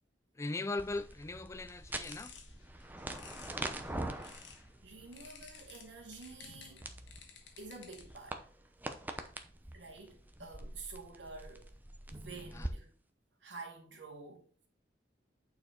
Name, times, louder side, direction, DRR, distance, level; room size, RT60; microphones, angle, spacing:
voice 1, 0.4-2.3 12.5-12.7, left 2 dB, 15° left, 0.4 m, -39 dB
sound 1, 0.8-12.7, right 1 dB, 10° right, 0.7 m, -45 dB
sound 2, 1.7-4.7 5.1-8.3, left 7 dB, 75° left, 1.3 m, -55 dB
voice 2, 4.8-6.9 7.6-8.4 8.9-9.1 9.7-11.7 12.1-12.9 13.4-14.5, right 3 dB, 80° right, 2.2 m, -49 dB
8.7 x 4.7 x 4.5 m
head